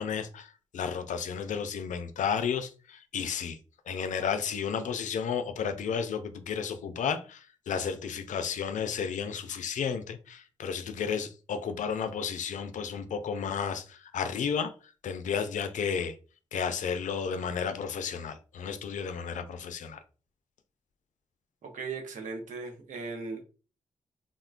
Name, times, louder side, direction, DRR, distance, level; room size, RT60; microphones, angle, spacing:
voice 1, 0.0-3.6 3.9-14.7 15.0-16.1 16.5-20.0, left 7 dB, 75° left, 0.4 m, -32 dB
voice 2, 21.6-23.4, right 4 dB, 80° right, 0.7 m, -38 dB
3.5 x 2.1 x 2.4 m
supercardioid pair, 45°, 13 cm